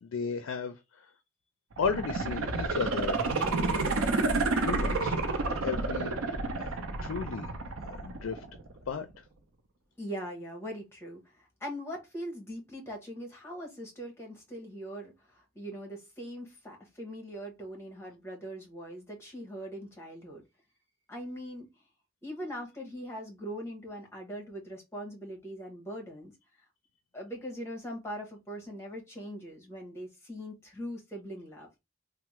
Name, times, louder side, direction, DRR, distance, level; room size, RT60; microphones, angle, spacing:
voice 1, 0.0-1.1 1.8-3.9 4.6-5.2 5.6-7.5 7.9-8.4 8.9-9.1, left 5 dB, 70° left, 0.4 m, -35 dB
sound 1, 1.7-8.7 9.1-9.2, right 3 dB, 90° right, 0.6 m, -30 dB
voice 2, 10.0-20.4 21.1-21.7 22.2-26.3 27.1-31.7, equal, 15° left, 1.0 m, -41 dB
3.3 x 2.0 x 2.9 m
head